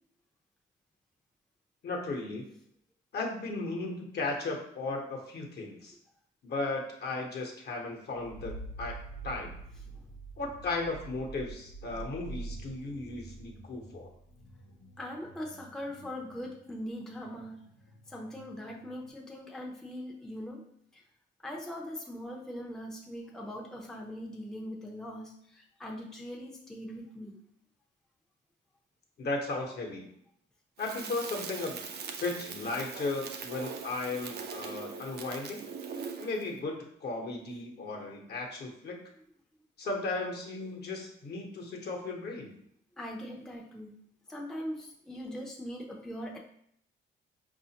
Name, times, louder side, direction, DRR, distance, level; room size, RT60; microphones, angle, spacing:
voice 1, 1.8-2.5 3.1-5.9 6.4-8.5 8.8-8.9 9.2-9.5 10.4-14.1 29.2-30.0 30.8-31.8 32.2-35.6 36.2-39.0 39.8-42.5, left 3 dB, 55° left, 1 dB, 0.9 m, -35 dB
sound 1, 8.1-19.1, right 2 dB, 85° left, 0.7 m, -47 dB
voice 2, 15.0-17.6 18.1-20.6 20.9-21.0 21.4-27.4 43.0-44.0 44.3-46.4, equal, 5° left, -1 dB, 0.5 m, -41 dB
Crackle, 30.8-36.5, right 5 dB, 55° right, 0.5 m, -41 dB
4.8 x 2.4 x 2.8 m, 0.69 s
cardioid pair, 90°, 20 cm